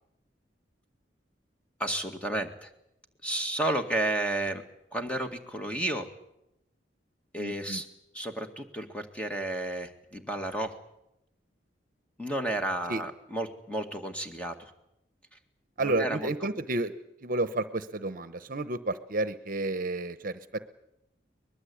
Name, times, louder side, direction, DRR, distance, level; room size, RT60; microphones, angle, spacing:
voice 1, 1.8-2.7 3.2-4.6 4.9-6.1 7.3-7.9 8.1-10.7 12.2-14.7 15.8-16.3, right 1 dB, 5° left, 5 dB, 2.1 m, -32 dB
voice 2, 7.4-7.8 12.9-13.0 15.8-16.9 17.2-20.6, right 2 dB, 50° right, 13 dB, 1.0 m, -31 dB
23.5 x 20.5 x 8.6 m, 0.84 s
head